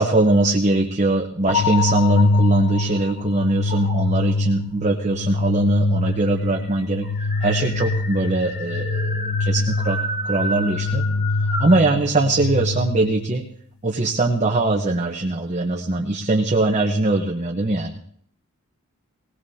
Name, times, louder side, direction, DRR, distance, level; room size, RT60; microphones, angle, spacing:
voice 1, 0.0-7.0 7.4-10.0 10.3-11.0 11.6-13.4 13.8-18.0, right 2 dB, 35° right, 1 dB, 1.0 m, -21 dB
sound 1, 1.5-13.4, left 3 dB, 80° left, 0.6 m, -24 dB
sound 2, 1.8-3.1 3.7-4.3 5.3-5.4 5.6-5.7 6.1-11.8, equal, 55° left, 6.8 m, -32 dB
20.5 x 18.5 x 2.8 m, 0.63 s
head